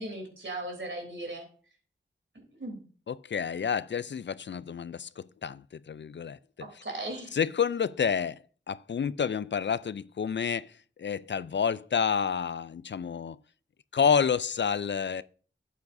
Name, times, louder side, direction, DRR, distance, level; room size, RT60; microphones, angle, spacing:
voice 1, 0.0-1.5 2.3-2.8 6.6-7.3, right 1 dB, 70° right, 3.2 m, -37 dB
voice 2, 3.1-6.4 7.3-8.4 8.7-10.7 11.0-13.4 13.9-15.2, left 7 dB, 60° left, 0.4 m, -29 dB
11.5 x 8.4 x 2.6 m
cardioid pair, 40°, 21 cm